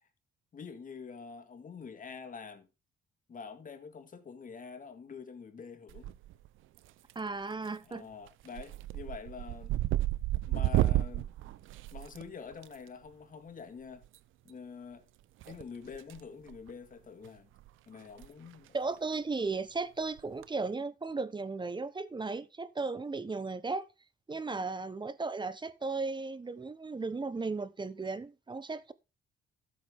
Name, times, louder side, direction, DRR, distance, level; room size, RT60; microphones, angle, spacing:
voice 1, 0.5-2.7 3.3-6.2 7.8-9.7 10.5-11.3 11.9-14.1 14.4-15.1 15.5-17.5 17.9-18.8 24.5-24.7, left 5 dB, 45° left, 2.0 m, -46 dB
sound 1, 5.9-6.5 6.8-7.3 7.7-7.9 8.3-12.7 14.0-14.2 15.4-16.2 16.5-16.7 17.2-17.3 17.6-17.7 18.1-18.3 18.5-18.6 20.2-20.4, right 15 dB, 85° right, 0.7 m, -32 dB
voice 2, 7.1-8.1 18.7-23.9 24.3-28.9, right 3 dB, 25° right, 1.1 m, -35 dB
13.5 x 7.8 x 3.7 m
cardioid pair, 90°, 20 cm